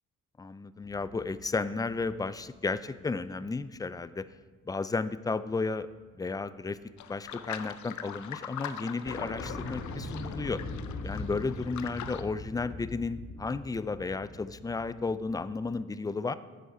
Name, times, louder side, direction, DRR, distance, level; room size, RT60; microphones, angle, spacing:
voice 1, 0.4-4.2 4.7-5.9 6.2-6.8 7.1-10.6 11.0-16.3, left 3 dB, 10° left, 15 dB, 0.4 m, -33 dB
sound 1, 0.8-3.4 3.9-4.0 5.5-5.9 6.1-7.6 7.8-7.9 8.1-8.2 8.5-8.6 9.0-15.8, left 2 dB, 45° left, 1.8 m, -42 dB
sound 2, 7.0-12.2, left 9 dB, 70° left, 0.7 m, -42 dB
10.0 x 8.2 x 4.9 m, 1.4 s
cardioid pair, 90°, 30 cm